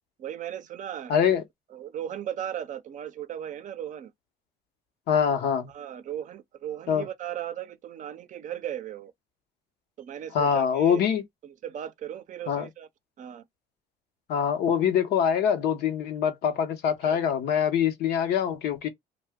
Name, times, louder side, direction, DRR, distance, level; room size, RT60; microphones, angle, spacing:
voice 1, 0.2-1.4 1.7-4.1 5.7-9.1 10.0-11.0 11.4-12.9 13.2-13.4 17.1-17.2, right 10 dB, 50° right, 0.5 m, -37 dB
voice 2, 1.1-1.4 5.1-5.7 6.9-7.1 10.3-11.2 12.5-12.7 14.3-18.9, left 8 dB, 75° left, 0.8 m, -24 dB
2.7 x 2.1 x 3.4 m
cardioid pair, 110°, 17 cm